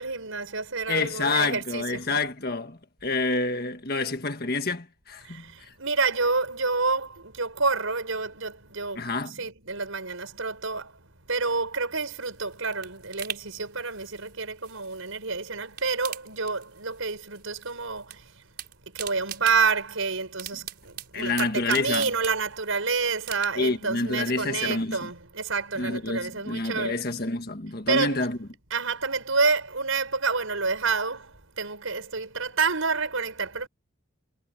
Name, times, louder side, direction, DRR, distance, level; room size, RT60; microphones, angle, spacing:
voice 1, 0.0-2.1 5.3-5.5 5.8-10.9 11.3-18.2 18.9-27.0 27.9-28.3 28.7-33.7, right 4 dB, 80° right, 5.4 m, -28 dB
voice 2, 0.9-5.7 8.9-9.4 21.1-22.1 23.6-25.0 25.8-28.4, left 3 dB, 45° left, 1.7 m, -28 dB
sound 1, 12.3-15.3 15.6-17.1 17.3-18.2 18.4-22.8 23.2-23.8 24.2-24.3, right 11 dB, 50° right, 5.3 m, -41 dB
head